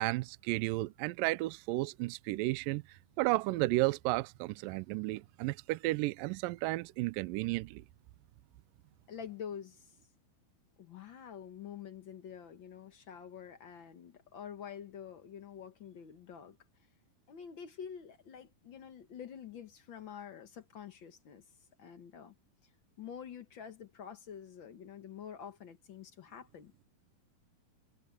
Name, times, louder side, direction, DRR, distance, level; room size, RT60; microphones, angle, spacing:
voice 1, 0.0-7.8, right 20 dB, 80° right, 2.1 m, -33 dB
voice 2, 9.1-10.0 10.8-16.6 17.3-21.4 21.8-22.3 23.0-26.7, left 8 dB, 80° left, 1.0 m, -47 dB
omnidirectional pair, 4.3 m